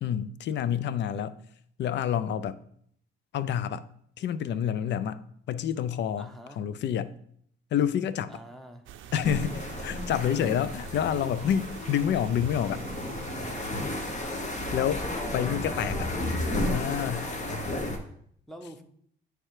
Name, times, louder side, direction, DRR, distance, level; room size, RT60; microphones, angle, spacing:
voice 1, 0.0-1.4 1.8-2.6 3.3-3.9 4.2-7.1 7.7-8.4 9.1-12.8 14.7-15.0 15.3-16.1 16.5-17.3, left 9 dB, 65° left, 0.5 m, -28 dB
voice 2, 6.2-6.6 8.3-8.8 15.1-16.3 18.5-18.8, equal, ahead, 0.9 m, -44 dB
sound 1, 8.9-14.7, right 9 dB, 80° right, 0.5 m, -46 dB
sound 2, 9.2-18.0, left 1 dB, 35° left, 1.2 m, -33 dB
8.5 x 3.4 x 4.8 m
cardioid pair, 90°, 20 cm